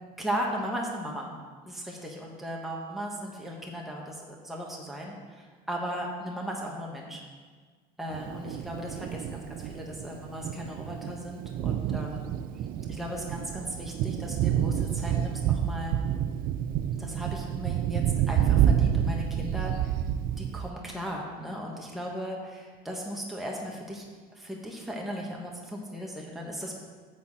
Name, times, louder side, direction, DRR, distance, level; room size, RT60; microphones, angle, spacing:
voice 1, 0.2-1.3 1.6-7.2 8.0-12.3 12.9-16.0 16.9-19.9 20.4-24.0 24.3-26.7, equal, ahead, -2 dB, 1.2 m, -37 dB
Thunder, 8.1-20.7, right 10 dB, 60° right, 0.4 m, -29 dB
9.4 x 4.2 x 7.3 m, 1.5 s
cardioid pair, 130°, 17 cm